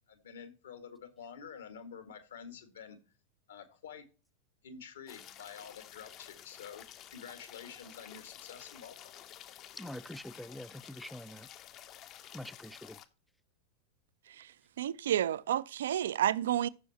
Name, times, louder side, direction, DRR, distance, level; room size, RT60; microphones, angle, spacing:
voice 1, 0.1-3.0 3.5-4.0 4.6-6.8 7.1-9.1, left 7 dB, 65° left, 1.8 m, -48 dB
sound 1, 5.1-13.1, left 11 dB, 35° left, 0.8 m, -52 dB
voice 2, 9.8-11.5 12.3-13.0, left 1 dB, ahead, 0.4 m, -45 dB
voice 3, 14.8-16.7, right 11 dB, 60° right, 0.4 m, -30 dB
14.5 x 6.3 x 2.9 m
figure-of-eight pair, 90°, 0 cm